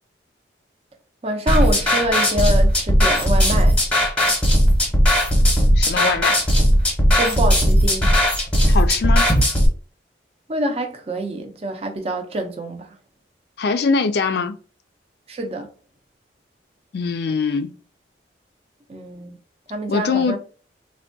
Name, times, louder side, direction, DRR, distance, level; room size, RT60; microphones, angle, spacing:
voice 1, 1.2-3.8 7.2-8.1 10.5-12.9 15.3-15.7 18.9-19.4 19.7-20.4, right 1 dB, 30° right, 0.5 m, -26 dB
sound 1, 1.5-9.7, equal, 5° left, 0.8 m, -17 dB
voice 2, 5.8-6.4 8.7-9.3 13.6-14.6 16.9-17.7 19.9-20.4, left 5 dB, 60° left, 0.3 m, -22 dB
3.4 x 2.2 x 2.6 m
head